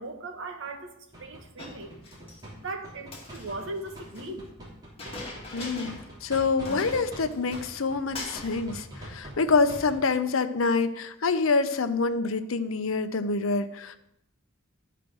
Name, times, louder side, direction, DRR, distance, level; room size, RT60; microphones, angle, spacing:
voice 1, 0.0-2.0 2.6-4.5, right 2 dB, 65° right, 4 dB, 1.3 m, -38 dB
sound 1, 1.1-7.2 7.5-10.0, right 1 dB, 20° right, 3.1 m, -43 dB
Chink clink, 1.6-2.4 3.0-4.3 5.0-6.1 6.4-6.5 6.7-7.9 8.1-8.7, left 2 dB, 30° left, 2.1 m, -41 dB
voice 2, 5.5-14.0, left 4 dB, 75° left, 11 dB, 0.7 m, -26 dB
11.5 x 5.0 x 6.1 m, 0.79 s
head